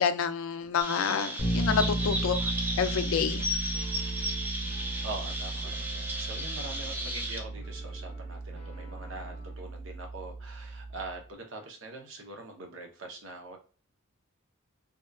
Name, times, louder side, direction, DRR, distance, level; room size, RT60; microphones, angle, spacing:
voice 1, 0.0-3.4, left 6 dB, 70° left, 11 dB, 0.3 m, -28 dB
Chirp tweet, 0.8-7.4, right 1 dB, 10° right, 0.3 m, -35 dB
Bass guitar, 1.4-11.2, right 1 dB, 15° left, 0.9 m, -35 dB
sound 1, 2.0-9.7, equal, 30° right, 0.9 m, -53 dB
voice 2, 5.0-13.6, right 2 dB, 60° right, 2 dB, 0.7 m, -43 dB
2.8 x 2.3 x 2.3 m, 0.38 s
head